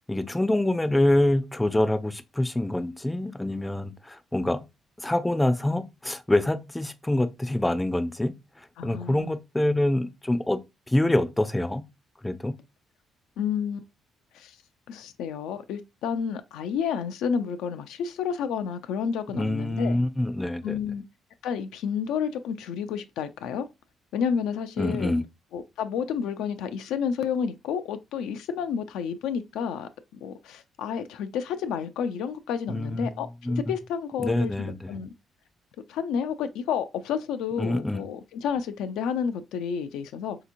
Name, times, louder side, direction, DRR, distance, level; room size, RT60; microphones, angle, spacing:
voice 1, 0.1-4.6 5.0-10.6 10.9-11.8 12.2-12.5 19.3-20.8 24.8-25.2 32.7-33.1 33.4-33.6 34.2-35.0 37.6-38.0, left 1 dB, 10° left, 0.4 m, -26 dB
voice 2, 8.8-9.4 13.4-13.8 14.3-14.6 14.9-20.0 20.6-21.0 21.4-23.7 24.1-25.1 25.5-35.1 35.9-40.4, left 7 dB, 90° left, 0.3 m, -30 dB
3.5 x 2.8 x 2.5 m
cardioid pair, 90°, 0 cm